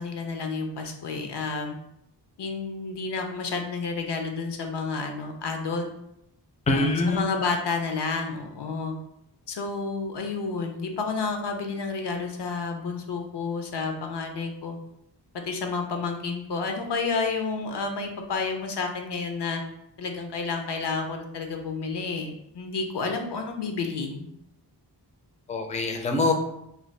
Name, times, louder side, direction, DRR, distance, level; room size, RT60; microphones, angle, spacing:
voice 1, 0.0-1.8 2.4-5.9 6.7-9.0 9.5-14.8 15.4-19.6 20.0-24.3, left 4 dB, 75° left, 4 dB, 0.5 m, -30 dB
voice 2, 6.7-7.2 25.5-26.3, left 2 dB, 20° left, 3 dB, 0.4 m, -24 dB
2.6 x 2.2 x 3.2 m, 0.81 s
wide cardioid pair, 65°, 42 cm